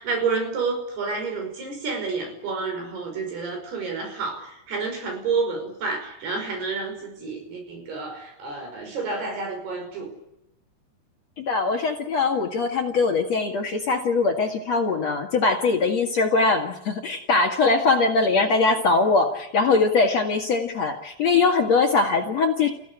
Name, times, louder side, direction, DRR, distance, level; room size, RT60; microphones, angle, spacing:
voice 1, 0.0-10.1, right 4 dB, 70° right, 4 dB, 7.3 m, -29 dB
voice 2, 11.4-22.7, left 4 dB, 50° left, 3 dB, 2.4 m, -21 dB
29.0 x 16.0 x 9.9 m, 0.85 s
omnidirectional pair, 4.8 m